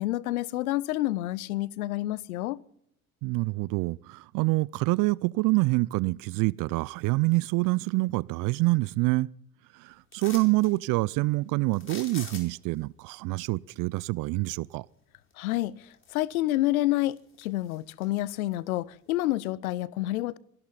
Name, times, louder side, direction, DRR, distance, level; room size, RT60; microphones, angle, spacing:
voice 1, 0.0-2.6 15.4-20.4, left 16 dB, 70° left, 0.8 m, -29 dB
voice 2, 3.2-9.3 9.7-14.9, right 23 dB, 45° right, 0.5 m, -26 dB
sound 1, 10.1-10.7 11.7-12.8 15.3-15.4 15.9-16.6 17.0-18.1 18.5-18.6, left 4 dB, 25° left, 4.5 m, -44 dB
24.0 x 12.5 x 4.1 m
figure-of-eight pair, 65°, 44 cm